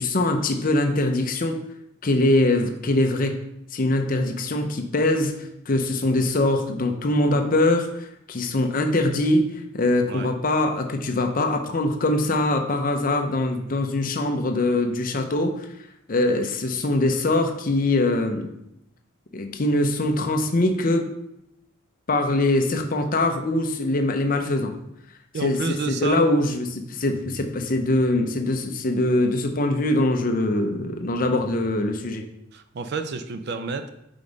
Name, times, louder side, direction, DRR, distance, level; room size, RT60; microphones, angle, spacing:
voice 1, 0.0-1.6 2.0-3.4 3.7-15.7 16.1-18.5 19.3-21.1 22.1-24.8 25.3-32.2, left 2 dB, 40° left, 5 dB, 0.6 m, -23 dB
voice 2, 25.3-26.3 32.5-33.9, right 4 dB, 50° right, 9 dB, 0.4 m, -29 dB
5.2 x 3.9 x 5.1 m, 0.82 s
head